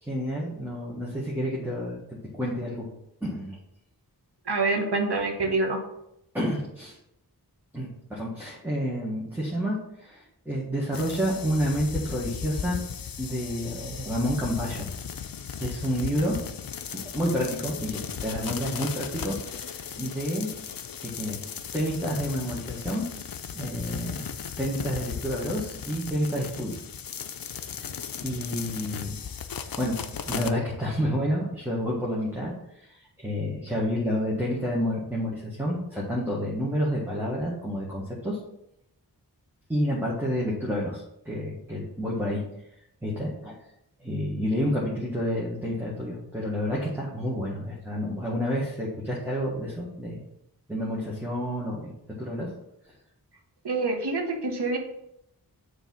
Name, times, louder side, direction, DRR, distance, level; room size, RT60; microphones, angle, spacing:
voice 1, 0.0-2.8 3.2-3.6 6.3-7.0 7.7-12.8 13.2-14.9 15.6-16.4 16.9-20.5 21.0-21.4 21.7-23.1 23.5-24.3 24.6-26.8 27.8-29.2 29.8-29.9 30.3-38.4 39.7-42.4 43.0-43.6 44.0-50.3 50.7-51.9 52.2-52.5, equal, 5° right, -5 dB, 1.6 m, -29 dB
voice 2, 4.4-5.8 53.6-54.8, right 3 dB, 80° right, 3 dB, 1.3 m, -26 dB
sound 1, 10.9-30.5, left 7 dB, 60° left, 0.5 m, -36 dB
7.1 x 3.3 x 5.5 m, 0.81 s
wide cardioid pair, 55°, 39 cm